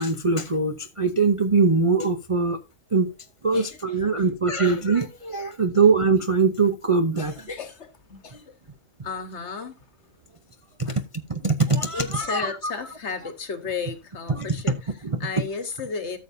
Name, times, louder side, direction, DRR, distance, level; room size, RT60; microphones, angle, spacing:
voice 1, 0.0-2.6 2.9-3.1 3.4-7.5 10.8-11.0 11.3-12.7 14.3-14.5 15.0-15.2, right 4 dB, 35° right, 0.6 m, -22 dB
voice 2, 3.5-4.0 7.2-8.5 9.0-9.8 10.8-11.0 11.9-14.9 15.2-16.2, left 5 dB, 55° left, 1.5 m, -34 dB
13.5 x 7.2 x 2.7 m
omnidirectional pair, 1.5 m